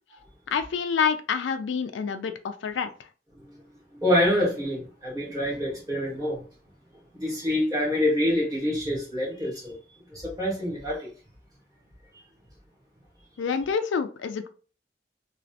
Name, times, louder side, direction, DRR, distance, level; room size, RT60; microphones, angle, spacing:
voice 1, 0.5-3.1 13.4-14.5, left 6 dB, 90° left, 0.4 m, -27 dB
voice 2, 3.9-6.4 7.1-9.8 10.1-11.1 12.1-12.2, left 1 dB, 20° right, 1.5 m, -26 dB
3.1 x 2.4 x 2.7 m
head